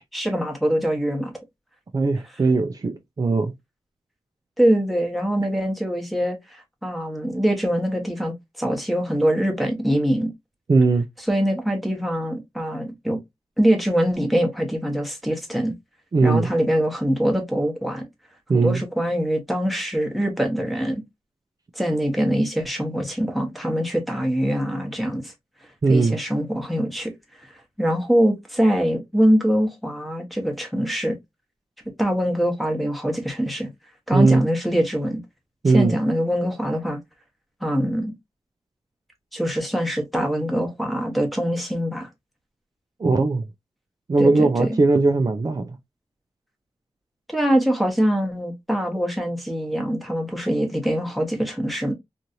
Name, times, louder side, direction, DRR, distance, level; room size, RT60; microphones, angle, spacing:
voice 1, 0.1-1.3 4.6-10.3 11.3-13.2 13.6-15.7 16.2-18.0 18.5-21.0 21.8-25.3 25.9-27.1 27.8-31.1 32.0-33.7 34.1-35.2 35.7-37.0 37.6-38.1 39.3-42.1 44.2-44.7 47.3-51.9, equal, ahead, 0.9 m, -23 dB
voice 2, 1.9-3.5 10.7-11.1 16.1-16.5 18.5-18.8 25.8-26.2 34.1-34.4 35.6-35.9 43.0-43.4 44.1-45.8, right 3 dB, 35° right, 0.4 m, -19 dB
3.0 x 2.5 x 2.6 m
wide cardioid pair, 100°, 11 cm